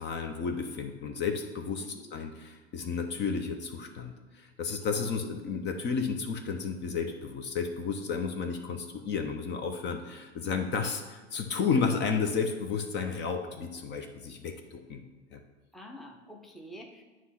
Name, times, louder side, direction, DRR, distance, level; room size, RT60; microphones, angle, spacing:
voice 1, 0.0-15.1 15.3-15.4, left 5 dB, 30° left, 5 dB, 0.8 m, -32 dB
voice 2, 1.8-2.1 4.9-5.1 15.7-17.0, left 1 dB, ahead, 2 dB, 0.8 m, -47 dB
9.3 x 3.1 x 5.8 m, 1.4 s
hypercardioid pair, 95°, 35 cm